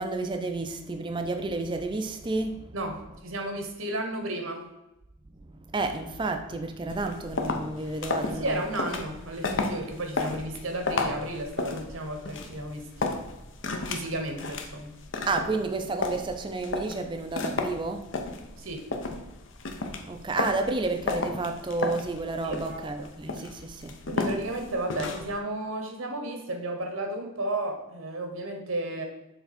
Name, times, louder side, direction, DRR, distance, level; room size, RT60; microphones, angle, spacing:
voice 1, 0.0-2.8 5.7-8.6 15.3-18.0 20.1-24.0, right 3 dB, 25° right, 5 dB, 0.4 m, -31 dB
voice 2, 2.7-4.6 8.3-12.9 13.9-15.0 18.6-18.8 22.4-22.8 24.1-29.0, right 1 dB, 80° right, 4 dB, 1.1 m, -33 dB
sound 1, 6.9-25.4, left 3 dB, 60° left, 0.6 m, -33 dB
6.7 x 3.4 x 4.2 m, 0.94 s
head